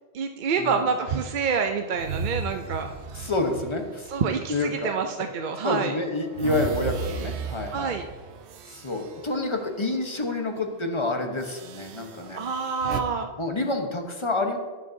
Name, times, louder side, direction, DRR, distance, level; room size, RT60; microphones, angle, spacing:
voice 1, 0.1-2.9 4.1-6.0 7.7-8.0 12.3-13.3, right 5 dB, 55° right, 6 dB, 0.6 m, -27 dB
sound 1, 1.9-5.3 5.7-10.1 10.4-10.6 11.4-13.0, right 5 dB, 85° right, 1.0 m, -36 dB
voice 2, 3.1-4.9 5.6-7.9 8.7-12.4 13.4-14.6, left 2 dB, 30° left, 4 dB, 1.0 m, -28 dB
17.5 x 6.6 x 2.7 m, 1.4 s
omnidirectional pair, 1.1 m